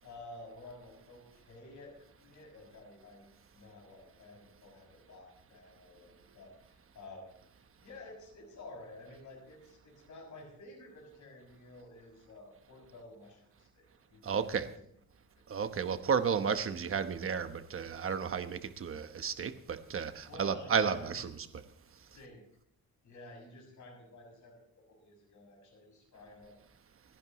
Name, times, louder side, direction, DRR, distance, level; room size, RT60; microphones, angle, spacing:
voice 1, 0.0-3.2 3.5-7.3 7.8-14.8 15.3-15.4 20.3-21.3 22.1-22.4 23.0-26.5, left 2 dB, 55° left, 6.7 m, -52 dB
voice 2, 14.2-14.7 15.5-21.6, right 6 dB, 40° right, 1.0 m, -33 dB
29.0 x 10.5 x 3.1 m
cardioid pair, 140°, 35 cm